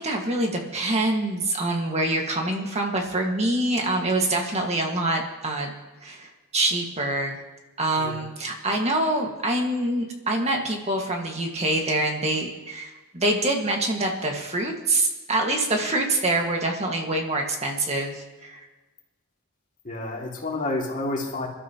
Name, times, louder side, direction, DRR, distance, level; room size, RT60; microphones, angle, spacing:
voice 1, 0.0-5.7 6.0-7.4 7.8-18.7, right 2 dB, 30° right, 1 dB, 1.8 m, -25 dB
voice 2, 19.8-21.5, left 2 dB, 40° left, -1 dB, 2.5 m, -29 dB
26.5 x 12.5 x 3.0 m, 1.2 s
head